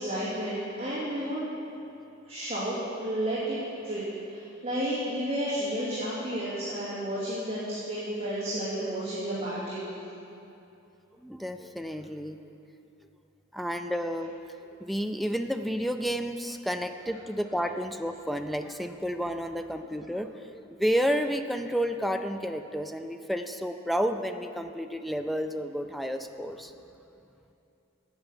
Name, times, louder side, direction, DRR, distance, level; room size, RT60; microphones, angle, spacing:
voice 1, 0.0-1.5 2.2-3.6 3.8-4.0 4.3-9.9, right 1 dB, 30° right, -10 dB, 2.3 m, -32 dB
voice 2, 11.2-12.4 13.5-14.3 14.8-26.7, equal, ahead, 7 dB, 0.3 m, -31 dB
9.0 x 9.0 x 6.9 m, 2.8 s
head